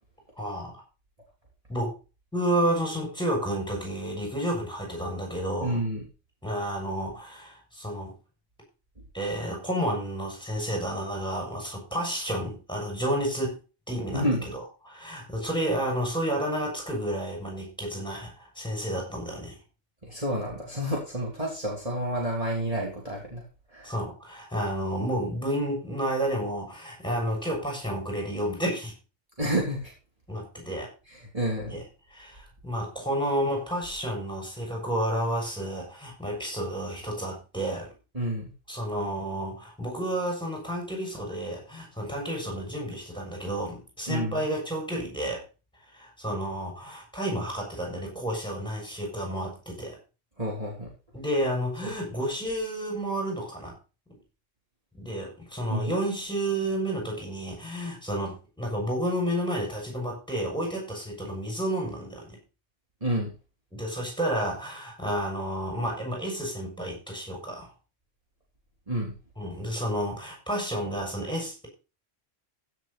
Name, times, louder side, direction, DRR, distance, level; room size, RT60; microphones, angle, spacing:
voice 1, 0.4-0.8 1.7-1.9 2.3-5.8 6.4-8.1 9.1-13.6 13.9-19.6 23.8-28.9 30.3-30.9 31.7-31.8 32.1-37.9 38.7-45.4 45.9-50.0 51.1-53.7 54.1-54.2 54.9-62.4 63.7-67.7 69.4-71.7, right 1 dB, 5° left, 0 dB, 6.9 m, -31 dB
voice 2, 5.6-6.1 14.1-14.5 20.0-23.4 23.7-23.9 29.4-29.9 31.1-31.8 38.1-38.5 44.1-44.5 50.4-50.9 51.8-51.9 55.7-55.9 63.0-63.3 68.9-69.1, right 1 dB, 30° right, -3 dB, 3.5 m, -29 dB
16.0 x 7.1 x 4.3 m, 0.32 s
omnidirectional pair, 1.3 m